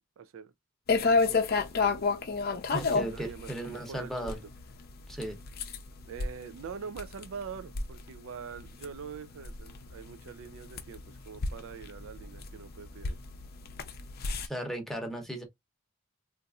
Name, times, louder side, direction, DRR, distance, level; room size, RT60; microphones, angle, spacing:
voice 1, 0.2-0.5 1.0-1.5 1.8-2.0 3.1-4.5 6.1-13.2, right 6 dB, 70° right, 0.4 m, -44 dB
sound 1, 0.9-14.5, left 4 dB, 45° left, 0.5 m, -32 dB
voice 2, 2.7-4.4 5.1-5.3 14.5-15.4, right 1 dB, ahead, 0.8 m, -36 dB
4.0 x 2.5 x 2.3 m
head